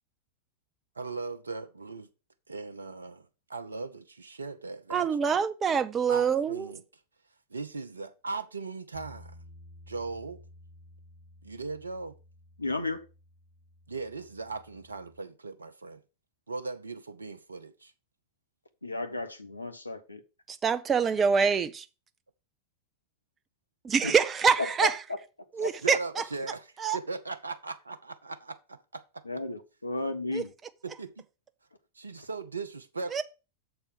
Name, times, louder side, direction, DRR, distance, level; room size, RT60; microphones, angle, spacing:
voice 1, 1.0-2.1 2.5-3.2 3.5-5.4 6.1-6.8 7.5-9.4 9.9-10.4 11.4-12.2 13.9-16.0 16.5-17.9 25.8-29.0 30.8-31.2 32.0-33.2, right 3 dB, 75° right, 0.7 m, -38 dB
voice 2, 4.9-6.7 20.5-21.9 23.8-25.0 25.5-26.2 26.8-27.0 30.3-30.5 33.1-33.2, right 6 dB, 20° right, 0.7 m, -25 dB
Bass guitar, 8.9-15.2, left 1 dB, 35° left, 5.1 m, -54 dB
voice 3, 12.6-13.0 18.8-20.2 24.0-24.1 24.8-24.9 25.6-25.9 29.3-30.5, left 2 dB, 80° left, 1.0 m, -33 dB
6.9 x 4.4 x 6.5 m
figure-of-eight pair, 90°, 0 cm